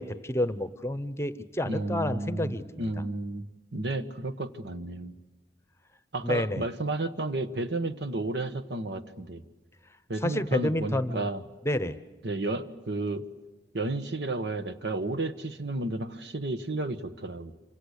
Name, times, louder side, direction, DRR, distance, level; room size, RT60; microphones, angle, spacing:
voice 1, 0.0-2.9 6.2-6.6 10.2-11.3 11.6-12.0, left 1 dB, 15° left, 13 dB, 0.9 m, -29 dB
voice 2, 1.6-3.4 3.7-5.1 6.1-9.4 10.1-11.4 12.2-13.2 13.7-17.5, right 2 dB, 75° right, 10 dB, 1.4 m, -32 dB
27.0 x 25.5 x 8.3 m, 1.1 s
head